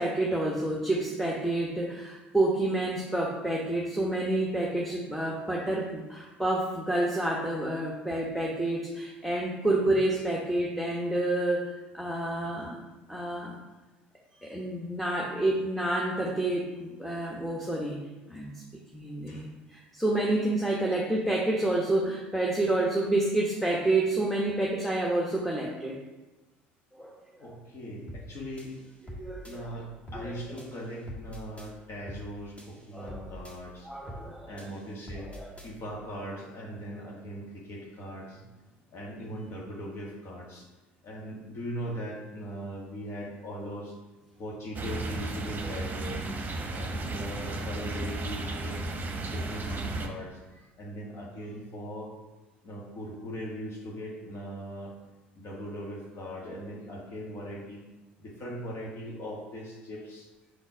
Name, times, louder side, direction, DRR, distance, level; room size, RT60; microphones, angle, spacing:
voice 1, 0.0-12.8 13.1-13.6 14.4-18.0 18.3-18.5 18.9-25.9 27.0-27.5 29.0-29.7 30.1-30.3 32.9-33.3 33.8-34.6 35.2-35.5, right 2 dB, 5° left, -3 dB, 1.1 m, -29 dB
voice 2, 27.4-28.8 29.4-33.9 34.4-35.3 35.6-38.4 38.9-40.7 41.0-44.0 44.4-46.3 46.7-48.8 49.3-52.1 52.6-54.9 55.3-57.8 58.2-60.3, equal, 45° left, -2 dB, 1.5 m, -40 dB
sound 1, 28.1-28.3 28.6-29.6 30.1-30.3 30.6-31.7 32.1-32.3 32.6-33.6 34.1-34.3 34.6-35.7, equal, 20° left, 1.6 m, -44 dB
sound 2, 44.7-50.1, right 2 dB, 30° right, 0.9 m, -34 dB
5.1 x 4.3 x 4.7 m, 1.1 s
hypercardioid pair, 65°, 6 cm